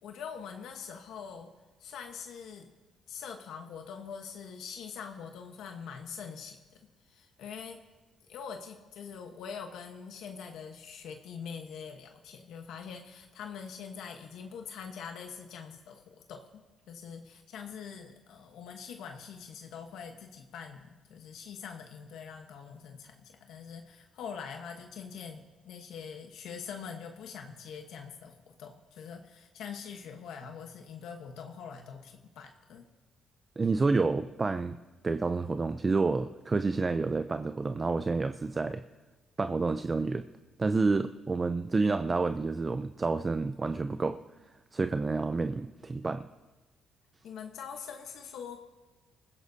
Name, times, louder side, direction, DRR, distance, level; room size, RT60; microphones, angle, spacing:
voice 1, 0.0-1.5 1.8-2.7 3.1-6.6 7.1-7.8 8.3-32.8 47.2-48.6, left 6 dB, 80° left, 4 dB, 1.1 m, -44 dB
voice 2, 33.6-34.8 35.0-38.8 39.4-40.3 40.6-44.2 44.7-46.3, right 3 dB, 30° right, 9 dB, 0.5 m, -29 dB
26.5 x 15.5 x 2.8 m, 1.2 s
cardioid pair, 90°, 0 cm